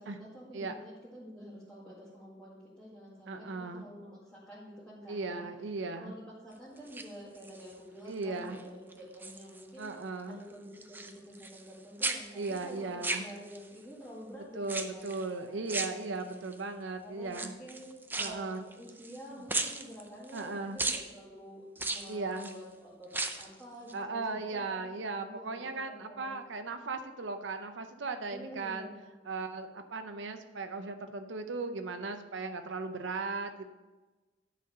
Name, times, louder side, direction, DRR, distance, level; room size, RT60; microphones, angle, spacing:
voice 1, 0.0-5.5 6.0-9.9 10.3-16.3 17.0-17.9 18.2-26.4 28.3-29.2, equal, 5° left, -10 dB, 1.9 m, -49 dB
voice 2, 3.3-3.9 5.1-6.1 8.0-8.6 9.8-10.4 12.3-13.3 14.5-17.5 18.2-18.7 20.3-20.8 22.1-22.5 23.9-28.9 29.2-33.7, right 3 dB, 85° right, 7 dB, 0.7 m, -37 dB
sound 1, 6.8-7.7 8.2-8.6 8.9-9.9 10.2-11.7 12.0-13.8 14.6-15.3 15.7-16.5 17.3-19.2 19.5-20.5 20.8-21.1 21.8-22.6 23.0-23.5 23.9-24.0, right 3 dB, 10° right, 0.5 m, -36 dB
10.5 x 4.2 x 6.7 m, 1.2 s
head